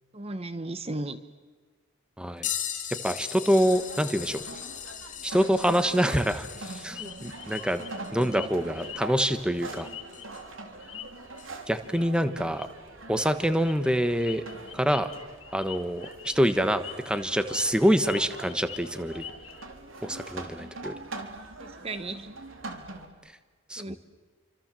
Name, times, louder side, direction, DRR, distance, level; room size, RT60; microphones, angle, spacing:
voice 1, 0.1-1.2 21.6-22.3 23.8-24.0, right 2 dB, 30° right, 12 dB, 1.1 m, -35 dB
voice 2, 2.2-2.5 3.0-4.4 5.2-7.8 8.1-9.9 11.7-12.7 13.1-14.4 14.7-15.1 15.5-19.2 20.0-20.9 23.7-24.0, equal, 5° right, 10 dB, 1.2 m, -26 dB
sound 1, 2.4-10.6 11.4-11.5 13.8-13.9 14.9-15.1 16.1-16.2, left 9 dB, 40° left, 3.0 m, -39 dB
sound 2, 3.5-23.1, right 2 dB, 75° right, 3.5 m, -43 dB
sound 3, 6.9-10.5 10.8-11.4 11.8-12.0 12.3-12.7 13.1-19.6, left 11 dB, 70° left, 2.0 m, -44 dB
30.0 x 25.5 x 7.6 m, 1.4 s
head